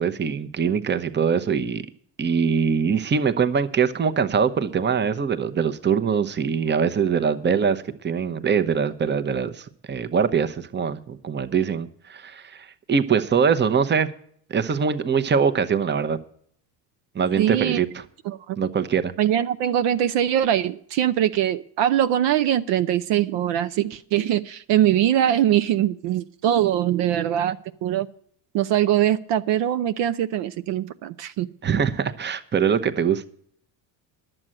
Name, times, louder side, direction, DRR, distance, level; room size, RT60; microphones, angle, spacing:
voice 1, 0.0-1.8 2.2-14.1 14.5-16.2 17.1-18.0 18.6-19.1 31.6-33.3, right 6 dB, 20° right, 10 dB, 0.8 m, -23 dB
voice 2, 17.4-17.8 18.3-18.6 19.2-28.1 28.5-31.5, right 11 dB, 60° right, 11 dB, 0.7 m, -22 dB
11.0 x 7.7 x 7.6 m, 0.63 s
supercardioid pair, 80°, 49 cm